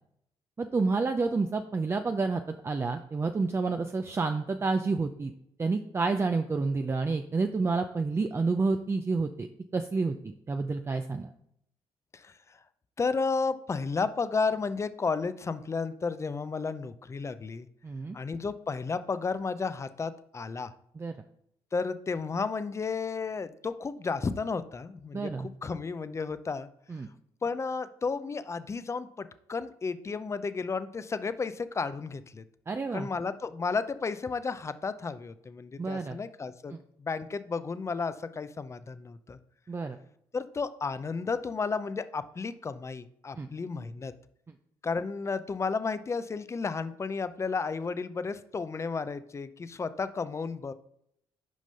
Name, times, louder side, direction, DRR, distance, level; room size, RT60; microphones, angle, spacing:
voice 1, 0.6-5.3 5.6-9.5 9.7-11.3 17.8-18.2 21.0-21.1 25.1-25.5 26.9-27.1 32.7-33.1 35.8-36.2 39.7-40.0 43.4-43.5, right 4 dB, 25° right, 6 dB, 0.5 m, -29 dB
voice 2, 13.0-17.7 18.1-20.7 21.7-26.7 27.4-32.4 32.9-36.7 37.0-39.4 40.3-44.1 44.8-50.7, left 4 dB, 30° left, 13 dB, 0.6 m, -33 dB
6.3 x 5.1 x 5.6 m, 0.74 s
cardioid pair, 80°, 10 cm